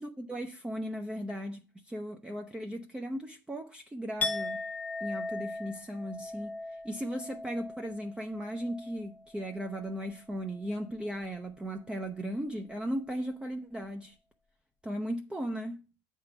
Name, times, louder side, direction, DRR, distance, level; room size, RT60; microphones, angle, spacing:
voice 1, 0.0-4.6 5.0-14.2 14.8-15.8, equal, 10° right, 0.6 m, -37 dB
Chink clink, 4.2-10.1 10.4-10.8, left 2 dB, 15° left, 0.9 m, -39 dB
7.8 x 3.7 x 6.7 m
supercardioid pair, 115°, 11 cm